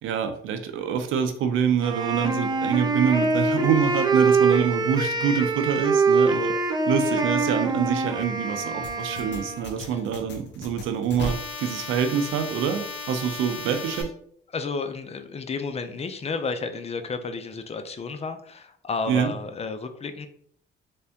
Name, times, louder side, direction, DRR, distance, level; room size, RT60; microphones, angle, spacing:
voice 1, 0.0-6.5 6.9-14.1 19.1-19.3, right 7 dB, 90° right, 8 dB, 0.5 m, -25 dB
Wind instrument woodwind instrument, 1.8-9.7, right 3 dB, 20° right, 0.6 m, -24 dB
sound 1, 8.8-14.0, left 3 dB, 65° left, 0.9 m, -35 dB
voice 2, 14.5-20.3, left 4 dB, 30° left, 8 dB, 0.5 m, -32 dB
3.5 x 3.3 x 2.8 m, 0.62 s
cardioid pair, 90°, 20 cm